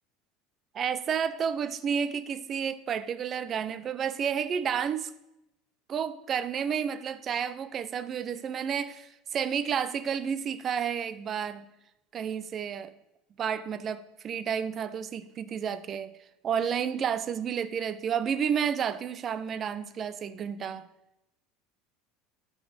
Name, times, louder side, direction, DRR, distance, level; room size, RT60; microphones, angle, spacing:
voice 1, 0.7-5.1 5.9-11.7 12.1-12.9 13.4-16.1 16.4-20.9, right 7 dB, 35° right, 14 dB, 0.5 m, -31 dB
12.0 x 5.2 x 4.9 m, 0.89 s
supercardioid pair, 135°, 0 cm